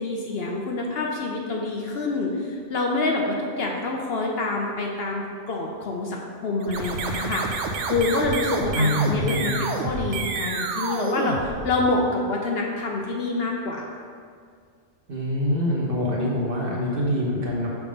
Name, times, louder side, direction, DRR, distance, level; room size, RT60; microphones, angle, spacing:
voice 1, 0.0-14.0, left 3 dB, 60° left, 0 dB, 0.8 m, -27 dB
sound 1, 6.6-12.1, right 4 dB, 75° right, 0.9 m, -29 dB
voice 2, 8.7-9.5 15.1-17.7, left 1 dB, 50° right, -4 dB, 1.2 m, -24 dB
5.8 x 3.5 x 5.1 m, 2.1 s
omnidirectional pair, 1.3 m